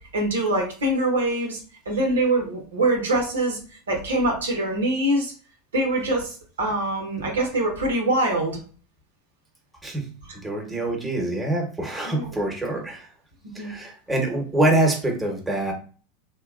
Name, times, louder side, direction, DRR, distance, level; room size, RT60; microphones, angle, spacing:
voice 1, 0.1-1.6 1.9-3.6 3.9-5.3 5.7-8.6 12.0-12.4 13.6-13.7, right 1 dB, 90° right, 1 dB, 0.9 m, -24 dB
voice 2, 10.4-13.1 13.5-15.7, right 1 dB, 10° right, 1 dB, 1.0 m, -25 dB
2.8 x 2.2 x 2.4 m, 0.39 s
hypercardioid pair, 90°, 0 cm